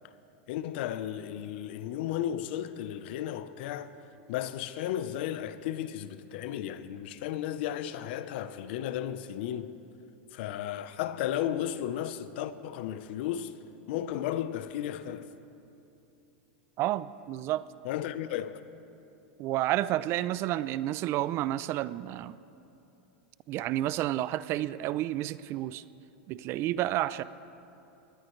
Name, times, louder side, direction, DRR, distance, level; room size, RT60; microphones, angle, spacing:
voice 1, 0.5-3.9 4.3-9.7 10.3-13.6 13.9-15.3 17.8-18.6, left 11 dB, 65° left, 0.8 m, -34 dB
voice 2, 16.8-17.6 19.4-22.4 23.5-25.8 26.3-27.2, right 14 dB, 45° right, 0.5 m, -30 dB
23.0 x 19.0 x 3.2 m
hypercardioid pair, 115°, 6 cm